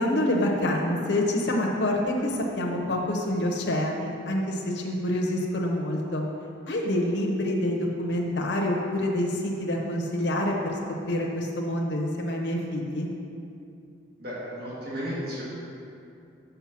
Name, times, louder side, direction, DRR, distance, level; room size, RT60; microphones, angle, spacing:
voice 1, 0.0-6.2 6.7-10.8 11.1-13.1, left 1 dB, 65° left, -1 dB, 0.8 m, -27 dB
voice 2, 14.2-15.4, equal, 50° right, -7 dB, 1.5 m, -33 dB
5.8 x 5.5 x 5.8 m, 2.6 s
head